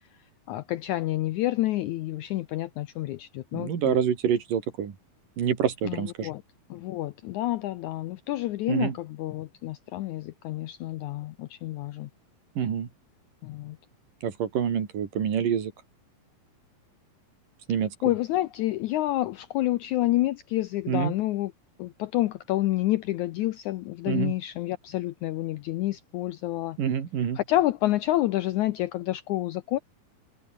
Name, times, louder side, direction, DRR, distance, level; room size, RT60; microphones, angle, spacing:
voice 1, 0.5-4.0 5.8-6.4 6.7-12.1 13.4-13.8 18.0-21.5 21.8-26.8 27.4-29.8, left 15 dB, 85° left, 1.7 m, -28 dB
voice 2, 3.5-4.9 5.4-6.3 8.7-9.0 12.6-12.9 14.2-15.7 17.7-17.9 20.9-21.1 24.1-24.3 26.8-27.4, right 8 dB, 65° right, 4.3 m, -26 dB
omnidirectional pair, 4.2 m